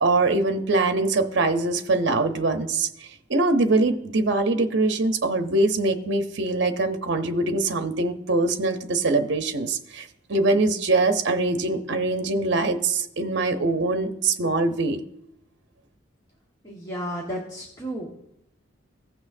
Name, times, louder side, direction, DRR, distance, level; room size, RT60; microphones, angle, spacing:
voice 1, 0.0-2.9 3.3-15.0, right 3 dB, 60° right, 7 dB, 0.8 m, -23 dB
voice 2, 16.6-18.2, equal, 20° left, -4 dB, 1.3 m, -33 dB
16.5 x 6.2 x 2.6 m, 0.80 s
head